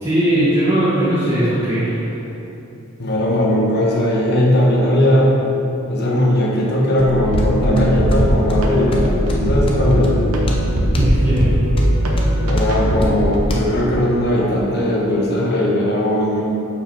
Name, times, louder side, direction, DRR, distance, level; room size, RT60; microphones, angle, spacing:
voice 1, 0.0-2.2 10.9-11.6, right 1 dB, 20° right, -11 dB, 1.3 m, -18 dB
voice 2, 3.0-5.4 5.9-10.2 12.4-16.4, left 1 dB, 50° left, -3 dB, 1.3 m, -18 dB
sound 1, 7.0-13.6, equal, 25° left, 0.7 m, -26 dB
sound 2, 7.0-13.5, equal, 90° right, 0.9 m, -20 dB
7.0 x 5.8 x 4.4 m, 2.9 s
head